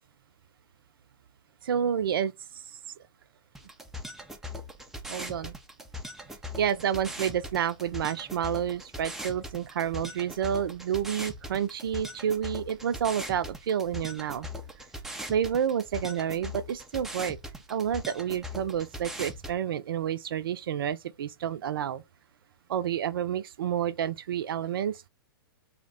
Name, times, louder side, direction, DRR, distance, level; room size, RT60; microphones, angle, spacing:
voice 1, 1.6-2.3 5.1-5.5 6.6-14.5 15.3-17.4 17.7-22.0 22.7-25.1, right 9 dB, 65° right, 0.4 m, -29 dB
sound 1, 3.5-19.5, left 1 dB, 5° right, 0.4 m, -40 dB
2.8 x 2.1 x 3.7 m
hypercardioid pair, 120°, 13 cm